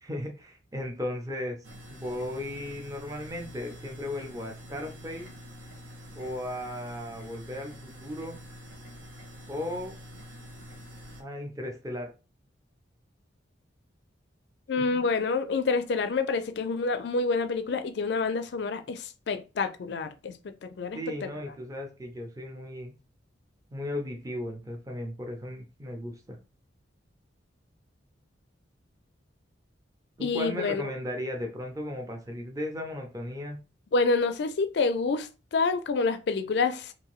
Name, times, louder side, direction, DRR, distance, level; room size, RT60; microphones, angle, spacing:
voice 1, 0.0-1.6 1.9-5.3 6.1-8.4 9.5-9.9 11.2-12.1 14.9-15.0 20.9-22.9 23.7-26.4 30.2-33.6, left 1 dB, 20° right, 0.5 m, -36 dB
sound 1, 1.6-11.2, equal, 80° right, 0.8 m, -46 dB
voice 2, 14.7-20.4 20.6-21.3 30.2-30.9 33.9-36.9, left 4 dB, 60° left, 0.4 m, -28 dB
2.7 x 2.6 x 3.0 m
head